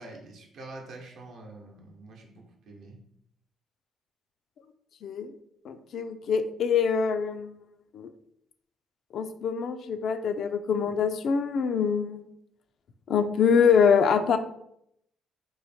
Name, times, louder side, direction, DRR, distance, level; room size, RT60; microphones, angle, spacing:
voice 1, 0.0-3.0, right 2 dB, 70° right, 1 dB, 0.8 m, -46 dB
voice 2, 5.0-5.3 5.6-7.5 7.9-8.1 9.1-12.3 13.1-14.4, left 6 dB, 65° left, 9 dB, 0.3 m, -24 dB
3.1 x 2.1 x 4.1 m, 0.73 s
cardioid pair, 90°, 0 cm